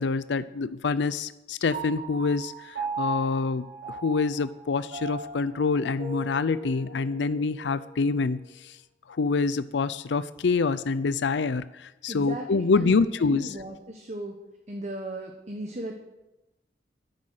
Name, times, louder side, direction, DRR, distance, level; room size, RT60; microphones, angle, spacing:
voice 1, 0.0-8.8 9.1-13.5, left 4 dB, 80° left, 15 dB, 0.5 m, -26 dB
Piano, 1.7-8.4, right 4 dB, 70° right, 5.7 m, -38 dB
voice 2, 12.1-14.4 14.7-16.0, right 1 dB, 40° right, 3 dB, 1.2 m, -36 dB
12.5 x 11.5 x 6.5 m, 0.97 s
head